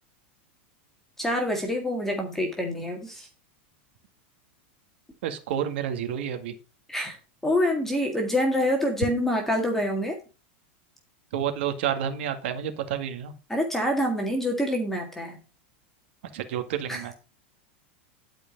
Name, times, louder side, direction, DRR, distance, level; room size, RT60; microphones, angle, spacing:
voice 1, 1.2-3.3 6.9-7.2 7.4-10.2 13.5-15.4 16.9-17.1, left 1 dB, 5° left, 2 dB, 1.9 m, -26 dB
voice 2, 5.2-6.5 11.3-13.3 16.3-17.1, right 9 dB, 70° right, 8 dB, 1.9 m, -29 dB
11.5 x 5.0 x 5.3 m, 0.33 s
supercardioid pair, 135°, 6 cm